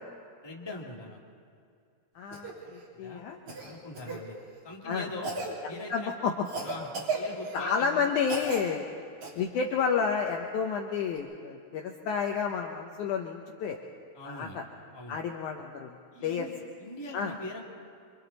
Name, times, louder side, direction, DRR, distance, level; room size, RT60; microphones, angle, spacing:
voice 1, 0.4-1.2 2.6-2.7 3.0-3.3 3.7-4.4 4.6-5.3 5.7-6.3 6.6-8.1 14.1-14.6 14.9-15.2 16.1-16.5 16.8-17.6, left 2 dB, 10° left, -2 dB, 1.7 m, -42 dB
voice 2, 2.2-3.7 4.0-4.2 4.8-5.1 5.6-6.5 7.5-8.8 9.4-13.8 14.2-14.6 15.1-16.5 17.1-17.3, left 6 dB, 70° left, 2 dB, 2.2 m, -31 dB
Cough, 2.3-2.5 3.5-4.2 5.2-5.5 6.5-7.7 8.2-8.6 9.2-9.3 11.2-11.3, right 3 dB, 55° right, 5.1 m, -35 dB
27.5 x 25.5 x 4.1 m, 2.4 s
omnidirectional pair, 4.0 m